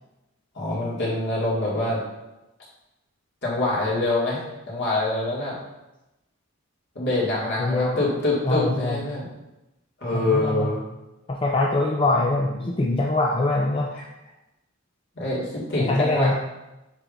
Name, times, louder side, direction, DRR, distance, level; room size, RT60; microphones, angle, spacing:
voice 1, 0.5-2.0 3.4-5.5 7.0-9.3 10.0-10.8 15.2-16.3, left 2 dB, 55° left, -6 dB, 2.2 m, -25 dB
voice 2, 7.6-8.1 8.4-9.0 10.1-10.7 11.3-13.9 15.8-16.3, left 2 dB, 25° left, -1 dB, 0.5 m, -23 dB
7.3 x 4.9 x 2.6 m, 0.95 s
head